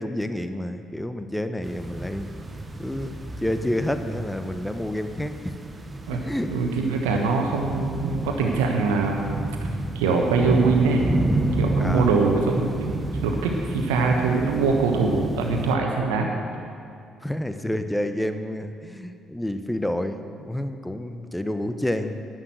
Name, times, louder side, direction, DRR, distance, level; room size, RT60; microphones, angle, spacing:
voice 1, 0.0-2.3 2.8-5.6 6.1-6.5 7.1-7.2 11.8-12.1 13.8-13.9 17.2-22.2, left 1 dB, 5° left, 8 dB, 0.9 m, -29 dB
sound 1, 1.6-15.8, right 2 dB, 25° right, 1.2 m, -30 dB
voice 2, 6.5-9.4 9.9-11.1 11.6-16.3, right 4 dB, 75° right, 1 dB, 1.2 m, -23 dB
11.0 x 9.3 x 7.8 m, 2.4 s
figure-of-eight pair, 45°, 0 cm